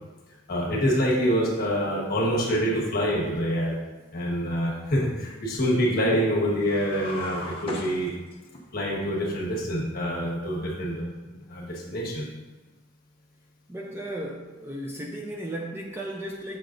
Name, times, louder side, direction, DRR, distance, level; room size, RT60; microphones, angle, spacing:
voice 1, 0.5-3.8 4.1-8.1 8.7-11.0 11.5-12.2, equal, 50° left, -4 dB, 1.4 m, -26 dB
sound 1, 6.6-8.6, left 1 dB, 30° left, 1.0 m, -37 dB
voice 2, 13.7-16.6, right 1 dB, 10° right, -1 dB, 0.4 m, -35 dB
6.7 x 6.6 x 2.5 m, 1.2 s
head